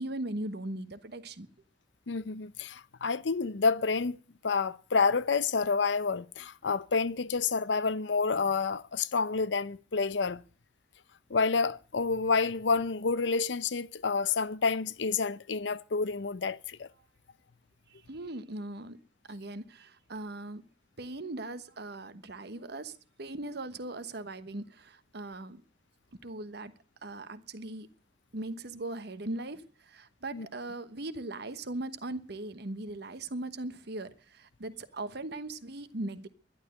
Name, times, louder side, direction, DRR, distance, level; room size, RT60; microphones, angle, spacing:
voice 1, 0.0-1.5 17.9-19.0 19.3-20.6 21.0-25.6 26.2-26.7 27.0-27.9 28.3-36.3, right 2 dB, 65° right, 1.2 m, -39 dB
voice 2, 2.1-4.2 4.4-10.4 11.3-16.9 30.3-30.5, left 4 dB, 90° left, 0.7 m, -29 dB
11.5 x 11.5 x 7.9 m
head